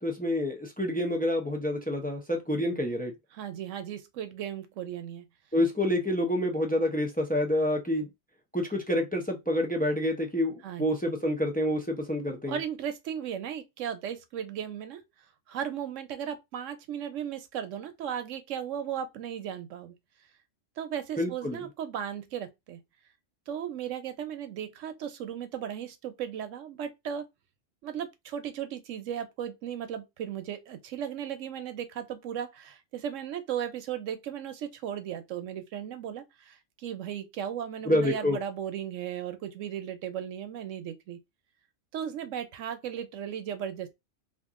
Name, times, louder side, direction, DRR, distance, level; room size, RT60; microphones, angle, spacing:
voice 1, 0.0-3.1 5.5-8.1 8.5-12.6 21.2-21.6 37.8-38.4, left 1 dB, 15° left, 0.3 m, -28 dB
voice 2, 3.3-5.2 10.6-10.9 12.5-15.0 15.5-19.9 20.8-22.8 23.5-27.2 27.8-41.2 41.9-44.0, right 9 dB, 90° right, 1.0 m, -36 dB
2.9 x 2.5 x 3.6 m
omnidirectional pair, 1.3 m